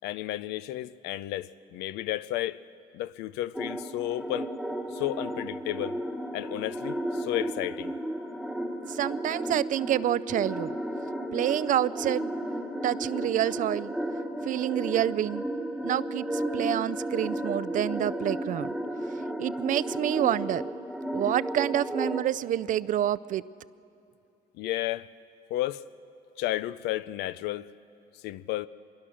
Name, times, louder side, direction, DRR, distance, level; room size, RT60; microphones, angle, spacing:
voice 1, 0.0-2.6 2.9-4.5 4.9-6.0 6.3-7.9 24.5-25.1 25.5-25.8 26.4-27.7 28.2-28.7, left 15 dB, 90° left, 16 dB, 0.5 m, -32 dB
sound 1, 3.5-22.2, right 1 dB, ahead, 1.2 m, -33 dB
voice 2, 8.9-10.7 11.3-12.3 12.8-13.9 14.4-15.4 15.8-18.7 19.4-20.6 21.1-23.4, right 12 dB, 50° right, 18 dB, 0.4 m, -28 dB
25.0 x 21.5 x 6.3 m, 2.8 s
cardioid pair, 110°, 17 cm